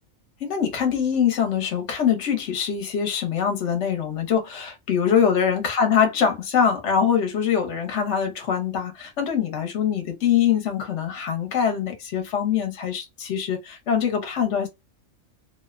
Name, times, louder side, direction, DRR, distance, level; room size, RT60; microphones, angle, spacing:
voice 1, 0.4-14.7, left 7 dB, 65° left, 1.1 m, -23 dB
2.8 x 2.0 x 2.3 m
omnidirectional pair, 1.4 m